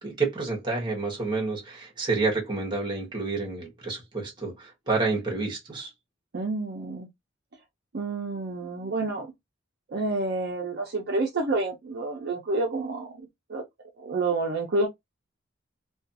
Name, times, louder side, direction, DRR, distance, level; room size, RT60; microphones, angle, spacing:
voice 1, 0.0-5.9, right 3 dB, 25° right, 1.0 m, -29 dB
voice 2, 6.3-7.1 7.9-9.3 9.9-13.6 14.0-14.9, right 2 dB, 55° right, 0.6 m, -29 dB
2.4 x 2.3 x 2.6 m
head